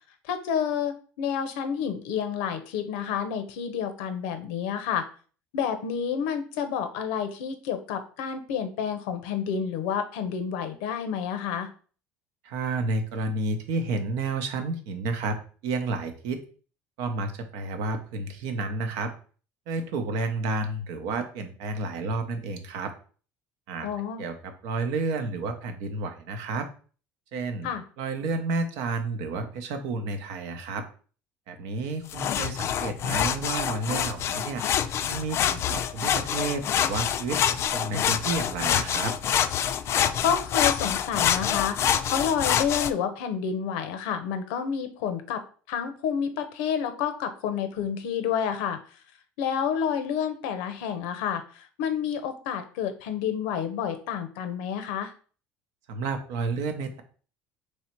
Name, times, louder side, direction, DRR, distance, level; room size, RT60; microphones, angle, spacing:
voice 1, 0.2-5.1 5.5-11.7 23.8-24.2 27.6-27.8 40.2-45.4 45.7-48.8 49.4-55.1, left 7 dB, 85° left, 8 dB, 0.6 m, -29 dB
voice 2, 12.4-15.4 15.6-16.4 17.0-19.1 19.7-22.9 23.7-23.9 24.2-26.7 27.3-27.7 28.0-30.8 31.5-34.6 35.1-39.1 55.9-57.0, right 3 dB, 80° right, 7 dB, 0.7 m, -31 dB
sound 1, 32.1-42.9, left 9 dB, 50° left, 0.3 m, -26 dB
3.1 x 2.8 x 4.4 m, 0.40 s
supercardioid pair, 95°, 6 cm